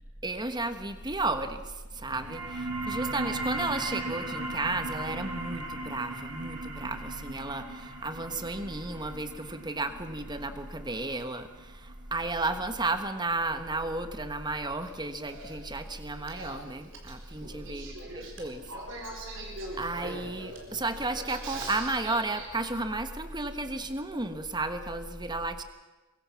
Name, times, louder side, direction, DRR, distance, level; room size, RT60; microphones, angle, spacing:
voice 1, 0.2-18.7 19.8-25.6, right 2 dB, 20° right, 9 dB, 1.4 m, -33 dB
sound 1, 2.0-13.1, right 2 dB, 75° right, 3.7 m, -38 dB
Male speech man speaking / Female speech woman speaking / Conversation, 14.8-22.5, right 2 dB, 60° right, 4.3 m, -43 dB
23.5 x 22.5 x 5.9 m, 1.2 s
head